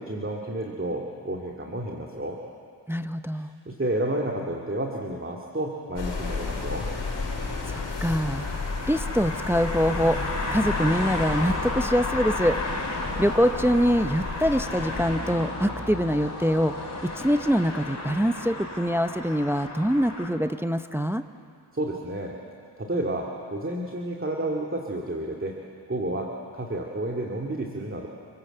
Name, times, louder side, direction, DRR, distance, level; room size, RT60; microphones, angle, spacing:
voice 1, 0.0-2.4 3.3-6.9 21.7-22.4 22.8-25.6 25.9-28.1, right 1 dB, 25° right, 0 dB, 2.4 m, -31 dB
voice 2, 2.9-3.5 7.7-8.5 8.9-10.2 10.5-12.6 13.2-16.7 17.0-21.2, equal, 5° right, 9 dB, 0.8 m, -24 dB
sound 1, 6.0-15.2, left 4 dB, 70° left, 5.4 m, -33 dB
sound 2, 6.3-20.3, left 2 dB, 35° left, 5.7 m, -33 dB
27.5 x 20.5 x 8.0 m, 2.4 s
cardioid pair, 55°, 45 cm